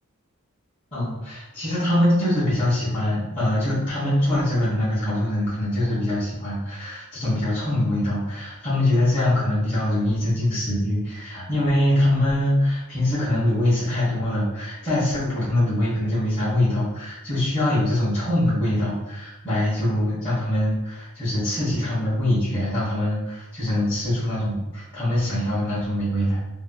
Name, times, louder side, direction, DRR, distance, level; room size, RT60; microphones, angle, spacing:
voice 1, 0.9-26.4, left 1 dB, 25° left, -15 dB, 1.3 m, -23 dB
3.2 x 2.8 x 2.3 m, 0.99 s
head